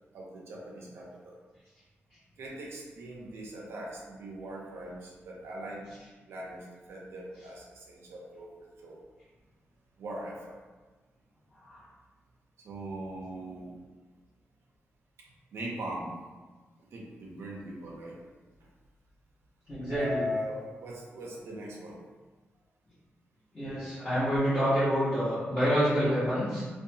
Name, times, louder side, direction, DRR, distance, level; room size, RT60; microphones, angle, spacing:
voice 1, 0.1-1.4 2.4-5.9 6.3-9.0 10.0-10.6 12.6-13.8 15.5-16.1 16.9-18.2 19.9-22.0, equal, 85° right, -3 dB, 0.5 m, -40 dB
voice 2, 19.7-20.3 23.5-26.6, equal, 20° left, -17 dB, 1.1 m, -27 dB
2.6 x 2.2 x 2.7 m, 1.3 s
wide cardioid pair, 180°, 4 cm